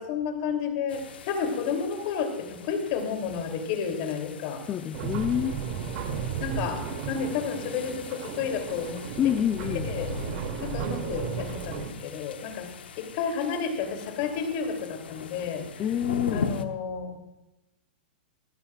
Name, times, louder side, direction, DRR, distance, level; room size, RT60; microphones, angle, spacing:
voice 1, 0.0-4.6 6.4-9.3 9.8-10.1 10.6-12.7 13.0-15.8 16.3-17.2, left 6 dB, 50° left, 6 dB, 3.2 m, -31 dB
sound 1, 0.9-16.6, left 5 dB, 85° left, 1.2 m, -40 dB
voice 2, 4.7-5.6 9.2-9.9 15.8-16.5, left 10 dB, 25° left, 8 dB, 0.7 m, -27 dB
sound 2, 4.9-11.9, right 7 dB, 50° right, 2.7 m, -34 dB
27.5 x 9.8 x 2.5 m, 0.96 s
hypercardioid pair, 135°, 5 cm